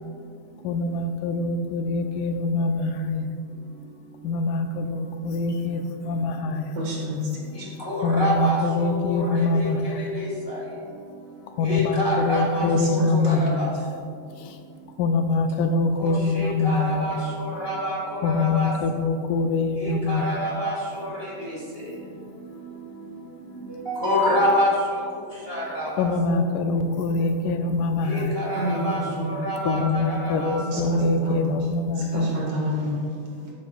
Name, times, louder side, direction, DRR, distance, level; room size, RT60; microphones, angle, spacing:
voice 1, 0.6-3.3 4.2-6.8 8.0-10.0 11.5-13.5 14.4-14.6 15.0-17.2 18.2-20.3 25.8-28.4 29.7-32.4, left 3 dB, 80° left, 6 dB, 2.1 m, -24 dB
voice 2, 6.8-7.2 7.6-7.7 12.7-12.8 13.3-13.6 28.6-28.8 29.2-29.3 30.6-30.8 31.2-31.4 32.1-33.0, equal, 55° right, -3 dB, 2.8 m, -28 dB
voice 3, 7.6-10.6 11.6-13.7 16.0-18.7 19.8-21.6 23.7-25.0 25.5-26.1 28.0-30.6, equal, 20° left, -5 dB, 1.8 m, -27 dB
12.0 x 10.5 x 2.4 m, 2.3 s
omnidirectional pair, 3.6 m